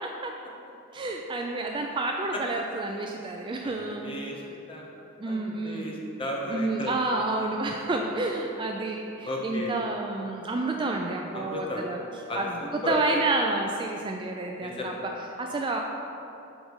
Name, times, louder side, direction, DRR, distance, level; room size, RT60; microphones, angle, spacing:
voice 1, 0.0-0.3 0.9-4.2 5.2-5.9 6.5-12.0 12.4-14.9 15.4-15.8, right 2 dB, 25° right, 2 dB, 0.3 m, -29 dB
voice 2, 3.6-4.9 5.2-7.0 9.3-9.7 11.3-11.8 12.3-13.0 14.6-15.0, left 1 dB, 25° left, -2 dB, 1.0 m, -34 dB
5.1 x 4.9 x 6.2 m, 2.8 s
head